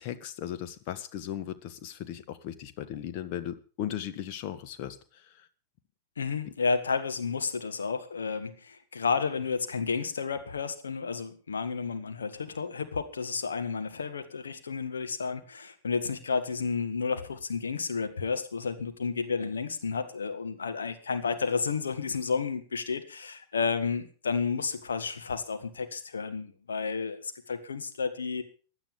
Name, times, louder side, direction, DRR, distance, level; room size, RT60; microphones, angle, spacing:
voice 1, 0.0-5.0, left 11 dB, 45° left, 11 dB, 1.5 m, -37 dB
voice 2, 6.2-28.4, left 5 dB, 70° left, 8 dB, 1.7 m, -31 dB
16.5 x 10.5 x 5.5 m, 0.39 s
figure-of-eight pair, 90°, 0 cm